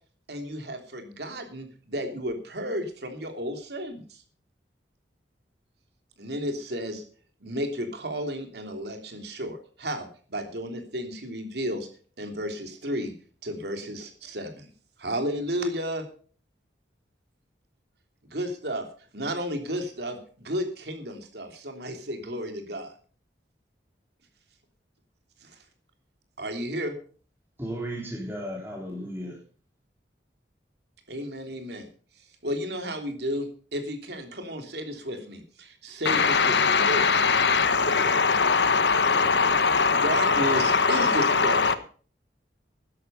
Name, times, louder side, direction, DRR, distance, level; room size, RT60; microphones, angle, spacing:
voice 1, 0.3-4.2 6.2-7.0 7.4-11.9 12.2-13.1 13.4-14.7 15.0-16.1 18.3-18.8 19.1-22.9 25.4-25.6 26.4-26.9 31.1-31.9 32.4-37.0 39.9-41.7, equal, 70° right, 3.1 m, -33 dB
voice 2, 27.6-29.4, equal, 10° right, 3.9 m, -34 dB
voice 3, 36.1-41.7, left 5 dB, 75° left, 1.4 m, -21 dB
13.5 x 11.0 x 5.5 m
head